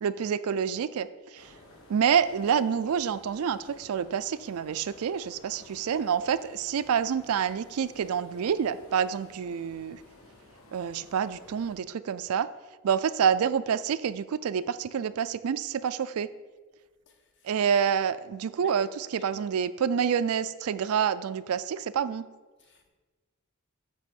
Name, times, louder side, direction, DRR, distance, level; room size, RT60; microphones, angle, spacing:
voice 1, 0.0-1.5 1.9-10.0 10.7-12.5 12.8-16.3 17.4-22.3, right 7 dB, 90° right, 14 dB, 0.4 m, -27 dB
sound 1, 1.4-11.8, left 2 dB, 75° left, 1.4 m, -54 dB
voice 2, 17.1-17.5 18.6-18.8 19.2-19.4 22.6-22.9, left 2 dB, 55° left, 3 dB, 1.3 m, -50 dB
9.9 x 3.5 x 6.8 m, 1.3 s
head